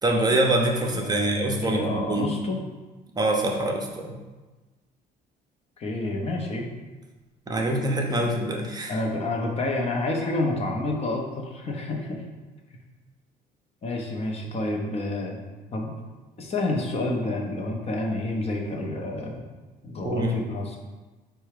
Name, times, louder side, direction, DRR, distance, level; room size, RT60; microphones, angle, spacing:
voice 1, 0.0-2.3 3.2-4.1 7.5-9.0 20.0-20.4, right 1 dB, 25° right, 1 dB, 0.7 m, -25 dB
voice 2, 0.9-2.6 5.8-6.7 8.9-12.2 13.8-15.4 15.7-16.0 16.4-19.4 19.8-20.8, left 2 dB, 35° left, 0 dB, 0.8 m, -29 dB
4.6 x 2.3 x 4.8 m, 1.2 s
cardioid pair, 110°, 17 cm